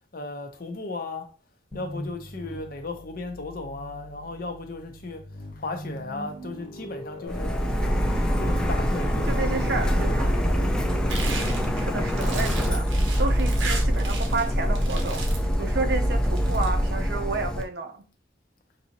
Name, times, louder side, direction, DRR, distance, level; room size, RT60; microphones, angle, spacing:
voice 1, 0.1-1.3 1.7-5.2 5.5-7.5 8.4-10.5 11.4-11.6 15.9-16.0, left 3 dB, 50° left, 0.6 m, -36 dB
sound 1, 1.7-11.7, equal, 30° left, 1.0 m, -41 dB
Printer, 7.3-17.6, equal, 5° left, 0.3 m, -24 dB
voice 2, 9.3-10.4 11.8-12.9 13.2-15.3 15.6-18.0, right 3 dB, 60° right, 0.5 m, -31 dB
sound 2, 11.1-14.5 14.7-15.5 16.2-16.7, right 4 dB, 90° right, 0.8 m, -35 dB
4.0 x 2.7 x 2.8 m
head